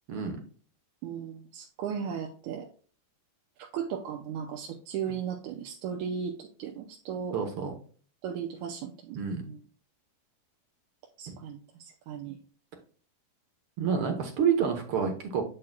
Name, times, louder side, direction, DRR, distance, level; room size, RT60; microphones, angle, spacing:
voice 1, 1.0-2.7 3.6-7.4 8.2-9.6 11.2-12.4, right 7 dB, 80° right, 2 dB, 2.0 m, -36 dB
voice 2, 7.3-7.7 9.1-9.4 11.3-11.4 13.8-15.4, right 7 dB, 60° right, 5 dB, 1.5 m, -28 dB
7.3 x 6.6 x 2.2 m, 0.43 s
omnidirectional pair, 3.6 m